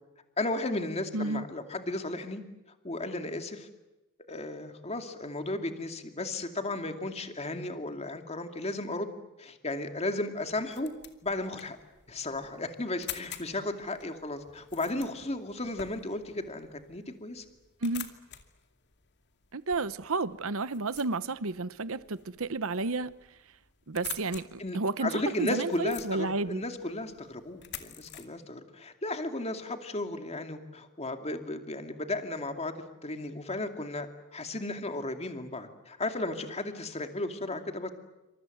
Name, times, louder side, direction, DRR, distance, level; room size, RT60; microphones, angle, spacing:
voice 1, 0.4-2.4 2.8-3.7 4.3-10.9 11.2-11.8 12.1-17.4 24.6-32.7 33.0-37.9, left 2 dB, 30° left, 2.5 m, -34 dB
voice 2, 1.1-1.5 17.8-18.1 19.5-23.1 23.9-26.6, right 3 dB, 65° right, 1.0 m, -31 dB
sound 1, 10.4-28.2, left 10 dB, 55° left, 2.5 m, -48 dB
28.0 x 26.5 x 8.0 m
head